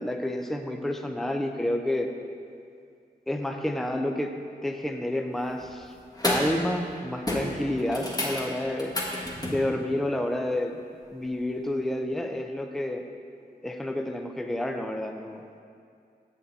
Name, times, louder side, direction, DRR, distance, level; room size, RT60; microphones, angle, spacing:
voice 1, 0.0-2.1 3.3-5.9 6.2-8.9 9.5-10.8 11.1-13.0 13.6-15.4, left 1 dB, ahead, 4 dB, 0.6 m, -29 dB
sound 1, 5.4-5.7 6.1-6.6 6.8-7.0 7.3-9.6 11.7-11.8, left 1 dB, 20° left, 1.5 m, -30 dB
7.3 x 6.8 x 4.0 m, 2.3 s
cardioid pair, 55°, 17 cm